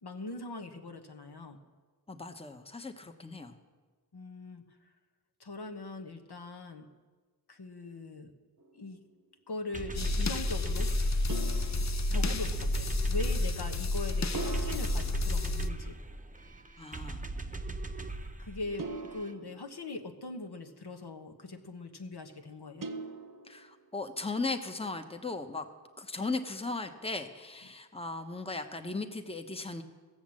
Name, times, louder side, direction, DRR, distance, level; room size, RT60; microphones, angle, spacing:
voice 1, 0.0-1.6 4.1-4.6 5.4-6.9 7.5-8.3 8.7-9.0 9.5-10.9 11.8-16.0 18.4-22.9, left 2 dB, 70° left, 5 dB, 1.1 m, -41 dB
voice 2, 2.1-3.5 12.1-12.2 16.8-17.2 23.4-25.7 26.0-29.8, left 3 dB, 15° left, 6 dB, 1.0 m, -37 dB
sound 1, 8.6-9.1 11.3-12.8 14.3-16.3 18.8-20.5 22.8-24.0, right 3 dB, 55° right, 0.9 m, -43 dB
sound 2, 9.7-19.3, right 2 dB, 20° right, 0.8 m, -41 dB
sound 3, 10.0-15.7, left 2 dB, 45° left, 0.6 m, -30 dB
15.5 x 7.3 x 7.5 m, 1.4 s
wide cardioid pair, 45°, 40 cm